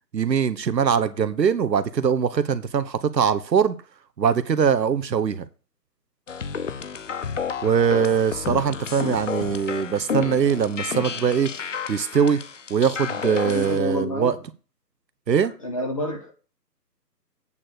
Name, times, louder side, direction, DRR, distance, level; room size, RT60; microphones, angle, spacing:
voice 1, 0.1-3.8 4.2-5.5 7.6-12.4 12.7-14.4 15.3-15.5, right 7 dB, 75° right, 1.0 m, -22 dB
sound 1, 6.3-13.8, left 6 dB, 50° left, 0.7 m, -31 dB
voice 2, 13.4-14.4 15.4-16.3, left 1 dB, 20° left, 0.9 m, -29 dB
8.6 x 4.3 x 6.8 m
figure-of-eight pair, 160°, 50 cm